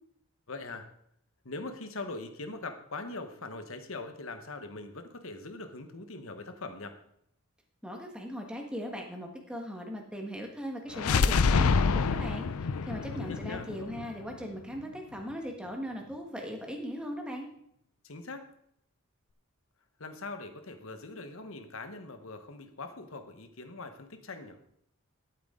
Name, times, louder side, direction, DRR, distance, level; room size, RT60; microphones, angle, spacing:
voice 1, 0.5-0.9 1.4-7.0 13.1-13.7 18.0-18.5 20.0-24.6, left 3 dB, 70° left, 8 dB, 1.2 m, -42 dB
voice 2, 7.8-17.5, equal, 5° right, 1 dB, 1.4 m, -39 dB
sound 1, 10.9-14.8, left 5 dB, 90° left, 0.5 m, -27 dB
12.5 x 8.2 x 3.8 m, 0.72 s
head